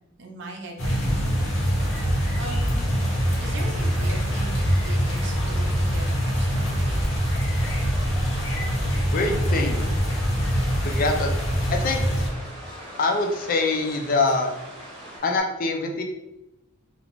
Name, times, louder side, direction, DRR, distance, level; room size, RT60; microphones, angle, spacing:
voice 1, 0.2-2.1 2.4-2.9 3.4-7.1, right 2 dB, 60° right, 1 dB, 0.5 m, -40 dB
sound 1, 0.8-12.3, equal, 75° left, 0.7 m, -24 dB
sound 2, 1.0-15.4, left 1 dB, 5° left, 0.8 m, -44 dB
sound 3, 2.9-15.2, right 1 dB, 25° right, 0.8 m, -43 dB
voice 2, 9.1-9.9 10.8-11.3 11.7-12.0 13.0-14.5 15.2-16.0, left 3 dB, 45° left, 3 dB, 0.4 m, -24 dB
2.5 x 2.0 x 2.9 m, 0.93 s
head